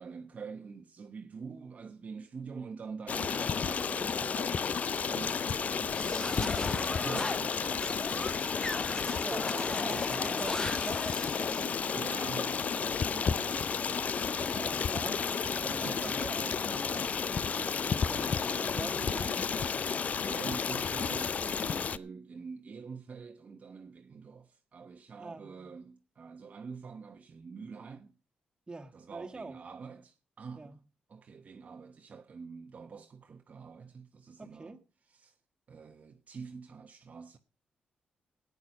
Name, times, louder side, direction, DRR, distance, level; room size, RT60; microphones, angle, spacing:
voice 1, 0.0-8.5 9.1-10.4 11.9-14.8 15.4-15.5 15.8-17.3 19.0-19.3 20.2-28.1 28.9-30.8 31.1-34.7 35.1-35.3 35.7-37.4, right 5 dB, 50° right, 1.0 m, -46 dB
Stream, 3.1-22.0, left 6 dB, 50° left, 0.5 m, -32 dB
sound 1, 5.9-11.7, left 2 dB, 25° left, 1.1 m, -37 dB
voice 2, 9.2-11.7 14.5-17.1 17.6-19.9 25.2-25.7 28.7-29.6 30.6-30.8 34.4-34.8, right 3 dB, 25° right, 1.9 m, -44 dB
14.0 x 9.5 x 5.3 m
cardioid pair, 80°, 3 cm